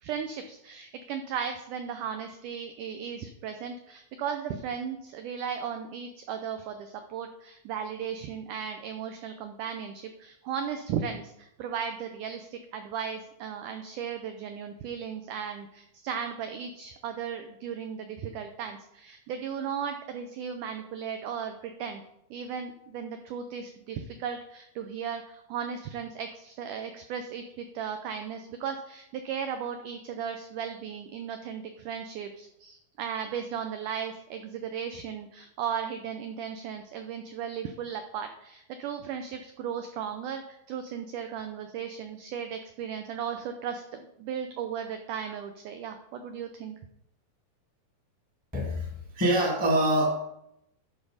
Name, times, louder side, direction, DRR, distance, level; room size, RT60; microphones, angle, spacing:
voice 1, 0.0-22.0 22.3-46.8, right 7 dB, 80° right, 7 dB, 1.8 m, -36 dB
voice 2, 48.5-50.1, right 1 dB, 5° right, -2 dB, 1.0 m, -25 dB
11.5 x 5.4 x 4.9 m, 0.80 s
omnidirectional pair, 4.4 m